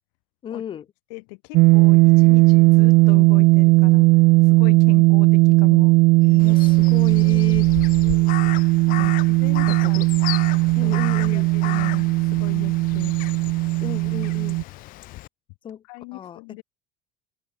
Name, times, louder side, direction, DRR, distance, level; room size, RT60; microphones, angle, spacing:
voice 1, 0.4-0.9 6.2-7.7 9.0-9.1 9.7-10.1 10.8-11.5 13.8-14.6 15.6-15.8 16.1-16.4, left 9 dB, 25° left, 4.2 m, -34 dB
voice 2, 1.1-4.1 4.4-6.0 8.9-9.1 9.4-10.0 10.8-13.2 15.9-16.6, left 38 dB, 75° left, 3.2 m, -38 dB
sound 1, 1.5-14.6, right 23 dB, 50° right, 0.6 m, -17 dB
Crow, 6.4-15.3, left 18 dB, 45° left, 2.6 m, -34 dB
open air
cardioid pair, 170°, 19 cm